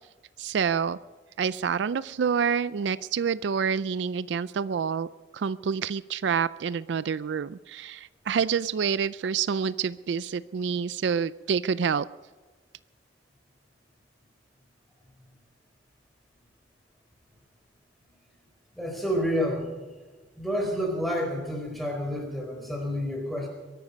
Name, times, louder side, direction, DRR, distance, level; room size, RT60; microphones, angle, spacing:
voice 1, 0.4-1.0 1.4-5.1 5.3-12.1, right 6 dB, 75° right, 17 dB, 0.4 m, -27 dB
voice 2, 18.8-19.7 20.4-23.5, equal, ahead, 1 dB, 4.5 m, -29 dB
23.0 x 11.5 x 5.3 m, 1.3 s
head